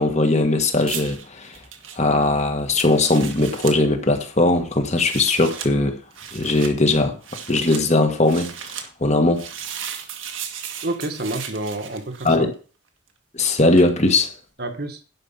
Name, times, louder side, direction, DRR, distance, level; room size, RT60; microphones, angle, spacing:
voice 1, 0.0-1.5 2.0-6.0 6.3-7.2 7.5-8.5 9.0-9.5 12.2-12.5 13.3-14.3, left 2 dB, 35° left, 1.5 m, -19 dB
sound 1, 0.8-3.8 4.8-5.7 6.1-6.7 7.2-7.8 8.2-8.9 9.3-12.5 13.8-13.9, right 8 dB, 80° right, 1.7 m, -35 dB
voice 2, 10.8-12.5 14.6-15.0, right 2 dB, 50° right, 1.5 m, -29 dB
11.0 x 5.2 x 7.3 m
head